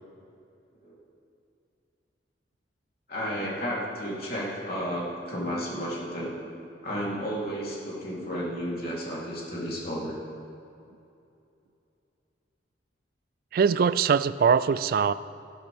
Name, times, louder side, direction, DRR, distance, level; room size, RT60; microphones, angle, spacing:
voice 1, 3.1-6.3 6.8-10.2, equal, 55° left, -6 dB, 3.2 m, -32 dB
voice 2, 13.5-15.1, right 6 dB, 50° right, 16 dB, 0.3 m, -22 dB
15.0 x 12.0 x 3.5 m, 2.7 s
head